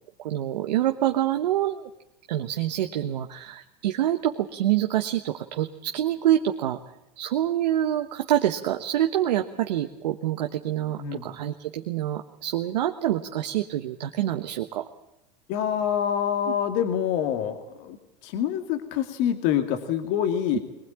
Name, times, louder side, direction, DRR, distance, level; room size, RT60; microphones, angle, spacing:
voice 1, 0.2-1.9 2.3-6.8 7.2-14.8, right 12 dB, 80° right, 6 dB, 1.2 m, -26 dB
voice 2, 15.5-20.6, left 9 dB, 60° left, 7 dB, 2.3 m, -26 dB
22.5 x 19.5 x 8.9 m, 0.89 s
hypercardioid pair, 100°, 21 cm